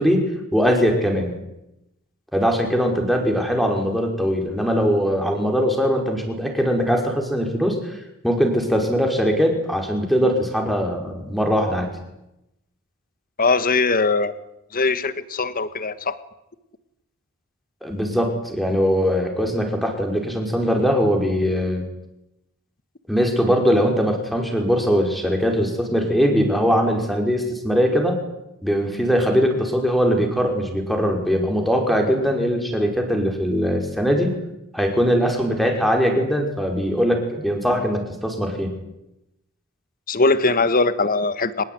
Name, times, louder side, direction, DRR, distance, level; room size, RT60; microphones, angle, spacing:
voice 1, 0.0-1.3 2.3-8.0 8.2-11.9 17.8-21.9 23.1-28.2 28.6-34.4 34.7-38.8, equal, ahead, 2 dB, 5.5 m, -21 dB
voice 2, 13.4-14.3 14.7-16.2 40.1-41.6, left 3 dB, 40° left, 13 dB, 1.6 m, -20 dB
24.5 x 21.0 x 9.7 m, 0.87 s
head